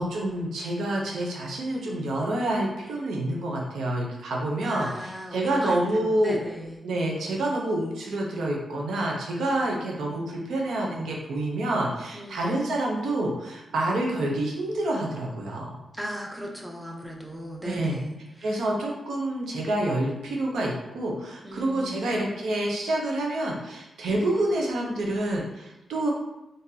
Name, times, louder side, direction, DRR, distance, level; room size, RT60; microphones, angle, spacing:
voice 1, 0.0-6.4 6.8-15.8 17.6-18.0 18.4-26.1, right 1 dB, 90° right, -1 dB, 0.6 m, -28 dB
voice 2, 4.6-6.8 12.1-12.7 15.9-18.7 21.4-22.1, equal, 15° right, -1 dB, 0.8 m, -37 dB
3.7 x 2.6 x 2.7 m, 0.93 s
cardioid pair, 60°, 0 cm